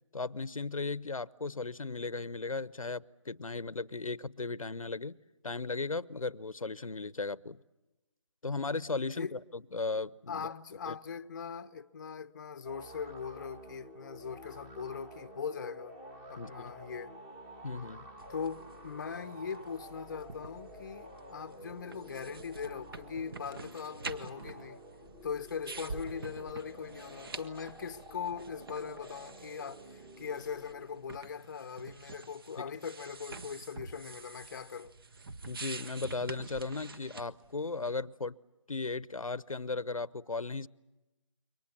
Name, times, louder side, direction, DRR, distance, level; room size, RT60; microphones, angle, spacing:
voice 1, 0.1-5.2 5.4-7.6 8.4-10.5 10.9-11.0 16.4-16.7 17.6-18.1 32.6-32.7 35.4-38.3 38.7-40.7, left 3 dB, 90° left, 0.8 m, -36 dB
voice 2, 10.3-16.0 16.3-17.1 18.3-24.8 25.2-34.9, left 6 dB, 35° left, 0.8 m, -40 dB
sound 1, 12.6-31.1, right 1 dB, 15° right, 1.6 m, -51 dB
sound 2, 14.8-23.6, left 6 dB, 15° left, 1.3 m, -59 dB
sound 3, 18.2-38.0, right 4 dB, 45° right, 1.4 m, -48 dB
28.0 x 24.0 x 7.3 m
figure-of-eight pair, 160°, 17 cm